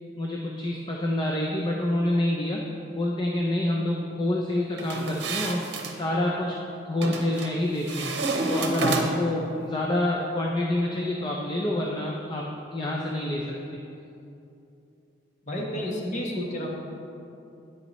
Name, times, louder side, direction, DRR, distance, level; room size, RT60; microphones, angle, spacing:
voice 1, 0.2-2.6 2.9-5.7 5.9-6.6 6.9-8.1 8.5-12.4 12.7-13.8, left 1 dB, 25° left, -2 dB, 0.5 m, -27 dB
sound 1, 4.8-6.0 7.0-7.5 7.9-9.4, right 2 dB, 65° right, 0.8 m, -28 dB
voice 2, 15.4-16.7, equal, 40° left, -2 dB, 1.2 m, -31 dB
9.3 x 9.2 x 3.1 m, 2.7 s
head